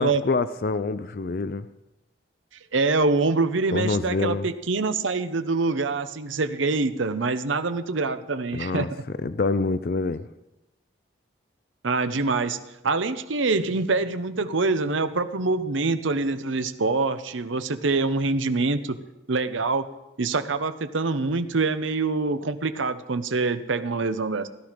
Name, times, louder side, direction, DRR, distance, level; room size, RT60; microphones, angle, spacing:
voice 1, 0.0-1.7 3.7-4.5 8.5-10.3, left 3 dB, 50° left, 13 dB, 0.4 m, -26 dB
voice 2, 2.7-8.9 11.8-12.6 12.8-19.0 19.3-19.9 20.2-24.5, right 3 dB, 90° right, 11 dB, 0.8 m, -25 dB
17.0 x 11.5 x 5.1 m, 0.96 s
head